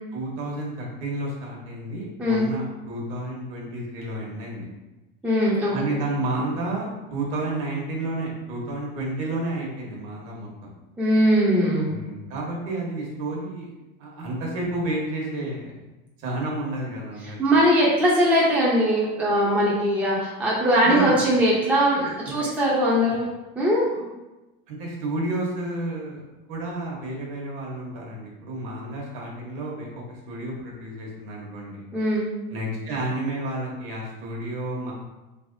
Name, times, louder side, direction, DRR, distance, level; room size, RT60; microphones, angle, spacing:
voice 1, 0.1-4.7 5.7-10.7 11.9-13.7 14.0-15.8 16.2-17.4 20.8-21.2 22.0-22.5 23.9-24.1 24.7-26.2 26.5-31.9 32.5-34.9, right 2 dB, 50° right, -2 dB, 1.1 m, -31 dB
voice 2, 5.2-6.0 11.0-12.0 17.4-23.3 23.6-23.8 31.9-32.3, equal, 5° right, -6 dB, 0.5 m, -20 dB
3.3 x 3.0 x 2.5 m, 1.1 s
supercardioid pair, 135°, 29 cm